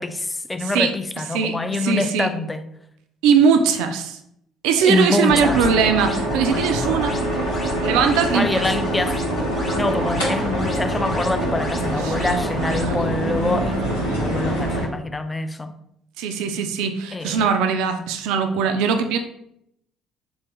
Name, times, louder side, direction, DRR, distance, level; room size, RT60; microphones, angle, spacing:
voice 1, 0.0-2.7 4.9-5.6 8.3-9.2 9.7-15.7 17.1-17.5, left 2 dB, 15° left, 0.3 m, -25 dB
voice 2, 0.6-0.9 1.3-2.3 3.2-4.2 4.6-7.2 7.8-8.7 12.0-13.0 16.2-19.2, right 6 dB, 65° right, 0.3 m, -21 dB
sound 1, 4.7-12.9, left 1 dB, 30° left, 0.8 m, -36 dB
sound 2, 5.3-14.8, right 1 dB, 80° left, 0.9 m, -24 dB
3.5 x 2.5 x 3.4 m
figure-of-eight pair, 50°, 0 cm